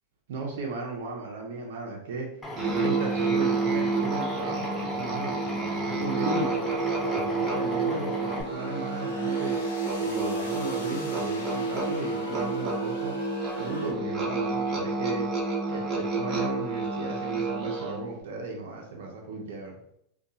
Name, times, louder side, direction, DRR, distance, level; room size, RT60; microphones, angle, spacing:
voice 1, 0.3-2.3 2.6-6.5 7.0-9.5 10.0-13.1 13.6-15.3 15.7-19.8, right 3 dB, 75° right, 0 dB, 0.6 m, -35 dB
Drill, 2.4-8.4, left 1 dB, 15° left, 0.6 m, -38 dB
Musical instrument, 2.6-18.1, right 3 dB, 25° right, 0.8 m, -29 dB
sound 1, 3.4-13.9, left 2 dB, 85° left, 0.7 m, -42 dB
2.7 x 2.2 x 2.3 m, 0.73 s
hypercardioid pair, 105°, 0 cm